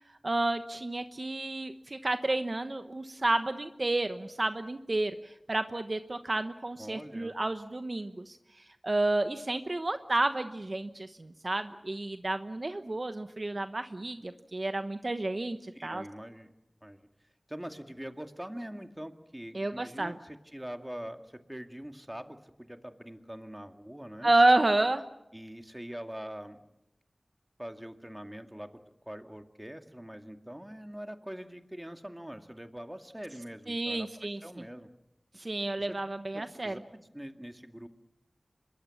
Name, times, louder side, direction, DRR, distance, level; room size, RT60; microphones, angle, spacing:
voice 1, 0.2-8.4 8.8-16.0 19.5-20.2 24.2-25.0 33.7-34.4 35.3-36.7, right 2 dB, 55° right, 9 dB, 1.1 m, -30 dB
voice 2, 6.8-7.4 15.7-16.5 16.8-17.1 17.5-24.3 25.3-26.6 27.6-28.8 29.1-34.9 35.8-36.0 36.3-37.9, equal, 15° right, 6 dB, 2.2 m, -43 dB
26.0 x 22.0 x 7.2 m, 0.88 s
wide cardioid pair, 45°, 0 cm